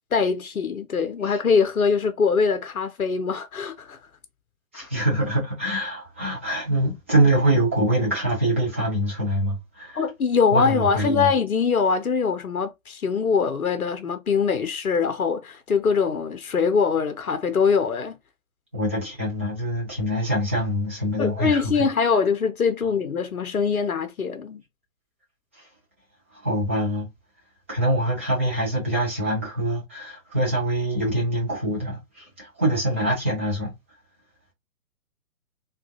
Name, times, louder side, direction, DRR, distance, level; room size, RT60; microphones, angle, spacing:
voice 1, 0.1-4.0 4.7-4.9 10.0-18.1 21.2-24.6, left 5 dB, 85° left, 0.7 m, -23 dB
voice 2, 4.7-10.0 10.5-11.3 18.7-21.9 25.5-25.7 26.3-27.1 27.7-33.7, right 1 dB, 10° right, 0.4 m, -24 dB
3.5 x 2.3 x 2.7 m
figure-of-eight pair, 130°, 42 cm